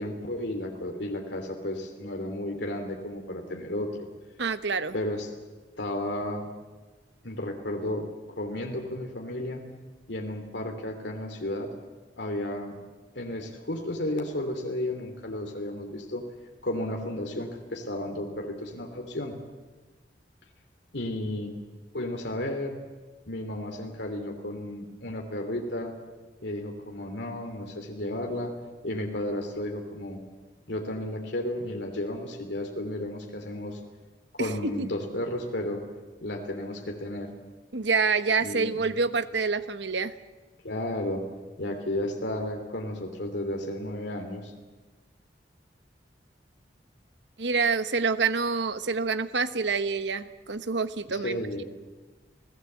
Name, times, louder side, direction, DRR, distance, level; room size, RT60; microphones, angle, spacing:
voice 1, 0.0-4.1 4.9-5.3 5.8-6.5 7.2-8.1 8.4-9.7 10.1-11.7 12.2-12.8 13.1-16.2 16.6-19.3 20.9-21.5 21.9-22.8 23.3-25.9 26.4-28.5 28.8-30.2 30.7-33.8 34.4-35.8 36.2-37.3 38.4-39.0 40.6-41.2 41.6-44.5 51.1-51.6, left 1 dB, 75° left, 3 dB, 2.9 m, -33 dB
voice 2, 4.4-4.9 34.4-34.5 34.8-34.9 37.7-40.1 47.4-51.6, right 4 dB, 80° right, 12 dB, 1.1 m, -27 dB
28.5 x 17.5 x 8.0 m, 1.3 s
head